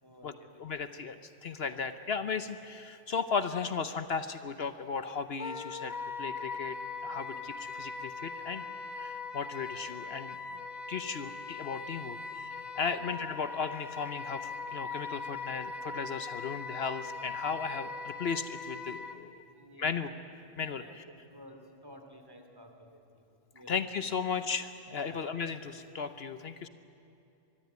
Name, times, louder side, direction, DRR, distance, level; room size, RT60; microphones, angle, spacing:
voice 1, 0.0-0.5 7.2-7.5 12.8-13.1 19.4-20.1 20.8-20.9 21.2-23.8 25.0-25.2, equal, 20° right, 4 dB, 2.8 m, -54 dB
voice 2, 0.6-6.8 7.0-8.7 9.0-10.4 10.9-19.4 19.8-20.1 20.6-21.0 23.7-26.7, left 5 dB, 65° left, 10 dB, 1.1 m, -36 dB
Wind instrument woodwind instrument, 5.4-19.2, left 4 dB, 40° left, 1.0 m, -40 dB
24.5 x 22.5 x 9.5 m, 2.7 s
omnidirectional pair, 1.2 m